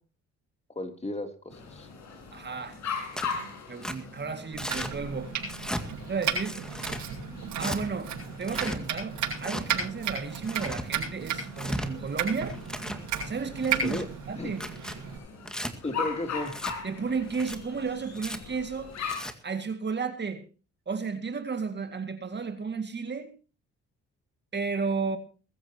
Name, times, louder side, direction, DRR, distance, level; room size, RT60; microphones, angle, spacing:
voice 1, 0.7-1.9 13.8-14.0 14.4-14.5 15.8-16.5, left 2 dB, 20° left, 6 dB, 3.1 m, -34 dB
sound 1, 1.5-19.2, left 5 dB, 65° left, 7.4 m, -41 dB
voice 2, 2.3-2.8 3.7-5.3 6.1-6.6 7.6-8.1 8.4-12.6 13.2-14.6 16.8-19.0 19.4-20.4 20.9-23.3 24.5-25.2, right 5 dB, 35° right, 7 dB, 2.1 m, -33 dB
Tearing, 3.1-3.4 3.8-4.0 4.6-4.9 5.4-5.8 6.4-7.0 7.6-7.8 8.4-8.8 9.4-9.6 10.3-10.8 11.4-11.9 12.5-13.0 13.6-14.0 14.5-15.0 15.5-15.7 16.5-16.7 17.3-17.6 18.1-18.4 19.0-19.3, equal, ahead, 2.1 m, -35 dB
Domestic sounds home sounds, 4.5-15.2, right 7 dB, 75° right, 7.4 m, -34 dB
22.0 x 14.5 x 2.9 m, 0.36 s
cardioid pair, 90°, 30 cm